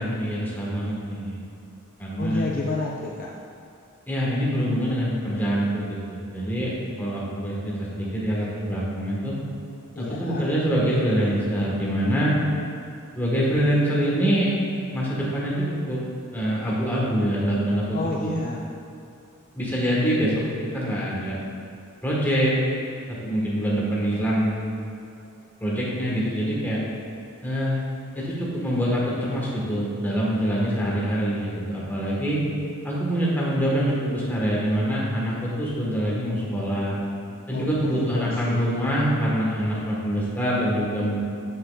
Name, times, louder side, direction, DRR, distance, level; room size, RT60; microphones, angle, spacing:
voice 1, 0.0-1.4 2.0-2.4 4.1-6.7 7.0-9.4 10.0-12.3 13.2-14.5 14.9-16.0 16.3-18.3 19.5-20.3 20.7-21.4 22.0-22.6 23.2-24.5 25.6-26.8 27.4-27.8 28.1-32.4 32.8-37.0 37.5-41.2, equal, 10° left, -6 dB, 1.3 m, -25 dB
voice 2, 2.2-3.3 10.0-10.5 17.9-18.7 37.5-38.7, left 2 dB, 40° left, -1 dB, 0.4 m, -31 dB
7.7 x 6.5 x 2.4 m, 2.6 s
head